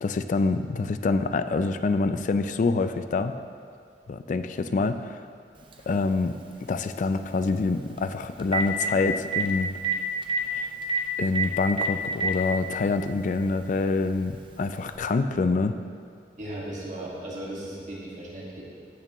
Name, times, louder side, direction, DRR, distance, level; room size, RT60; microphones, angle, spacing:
voice 1, 0.0-3.3 4.1-5.2 5.9-6.3 6.7-9.7 10.5-10.7 11.2-15.8, left 3 dB, 45° left, 10 dB, 0.3 m, -26 dB
Telephone, 5.7-5.8 8.0-8.1 8.4-8.9 9.3-9.4 9.8-10.0 10.2-10.4 10.9-11.0 11.4-11.5 11.8-12.3 13.3-13.4 14.9-15.0, right 4 dB, 30° right, 0.8 m, -25 dB
voice 2, 16.4-18.6, right 1 dB, 45° right, -5 dB, 1.8 m, -36 dB
14.5 x 6.7 x 3.0 m, 2.2 s
head